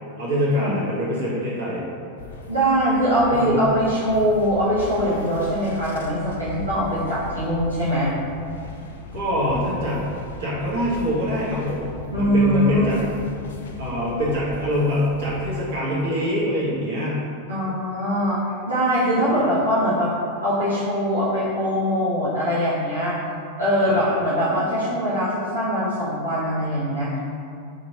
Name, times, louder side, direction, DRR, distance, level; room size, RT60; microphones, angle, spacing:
voice 1, 0.2-1.8 3.4-3.6 9.1-10.1 10.4-13.0 13.8-17.2 19.3-19.5 23.8-24.2, equal, 55° right, -7 dB, 1.0 m, -24 dB
sound 1, 2.2-15.6, left 2 dB, 60° left, 0.3 m, -38 dB
voice 2, 2.5-8.1 12.1-12.9 17.5-20.1 20.4-23.1 23.6-27.2, equal, 85° right, -11 dB, 0.8 m, -22 dB
3.0 x 2.5 x 4.0 m, 2.5 s
figure-of-eight pair, 90°, 0 cm